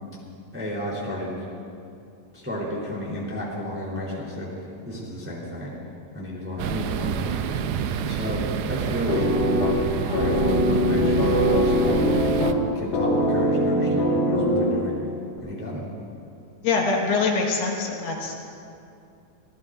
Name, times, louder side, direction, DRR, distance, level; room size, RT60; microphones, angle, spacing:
voice 1, 0.5-1.3 2.3-5.8 6.1-7.6 8.0-9.3 9.8-11.3 11.6-12.2 12.7-15.0 15.4-15.9, equal, 5° right, -5 dB, 3.2 m, -32 dB
sound 1, 6.6-12.5, right 8 dB, 80° right, 2.4 m, -28 dB
sound 2, 9.1-15.1, equal, 50° left, 2.5 m, -22 dB
voice 2, 16.6-18.4, left 4 dB, 75° left, -1 dB, 3.6 m, -24 dB
26.0 x 19.0 x 2.7 m, 2.5 s
omnidirectional pair, 4.7 m